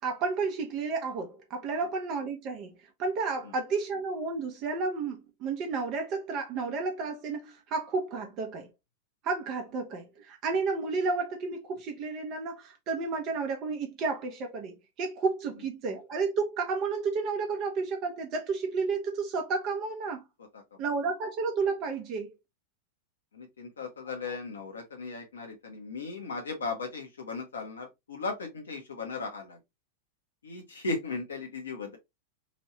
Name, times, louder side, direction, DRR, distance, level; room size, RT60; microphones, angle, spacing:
voice 1, 0.0-2.7 3.0-8.7 9.2-20.2 20.8-22.3 23.8-23.9 24.2-24.3, right 4 dB, 40° right, 0.7 m, -31 dB
voice 2, 23.3-29.6 30.4-32.0, left 3 dB, 70° left, 0.9 m, -37 dB
3.1 x 2.6 x 3.0 m
figure-of-eight pair, 90°, 0 cm